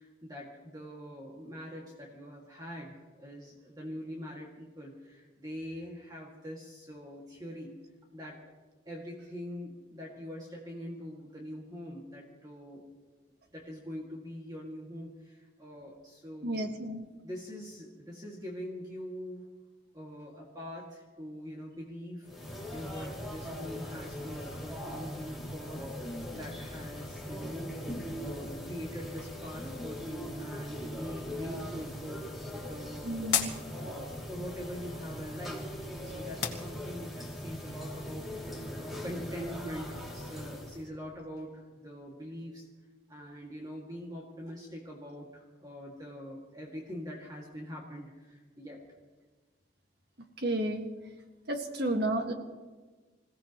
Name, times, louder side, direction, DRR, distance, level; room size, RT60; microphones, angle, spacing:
voice 1, 0.0-7.8 8.1-8.4 8.9-12.8 13.5-16.7 17.2-19.5 19.9-22.3 22.7-27.7 28.1-33.3 33.8-35.7 36.0-38.3 38.7-42.7 43.1-48.8, equal, 20° right, -3 dB, 2.3 m, -43 dB
voice 2, 16.4-17.0 33.0-33.5 50.4-50.9 51.5-52.3, right 1 dB, 55° right, 3 dB, 1.9 m, -31 dB
sound 1, 22.2-40.9, equal, ahead, 2.8 m, -40 dB
sound 2, 31.8-37.3, left 9 dB, 60° left, 1.9 m, -39 dB
27.0 x 16.5 x 3.1 m, 1.3 s
head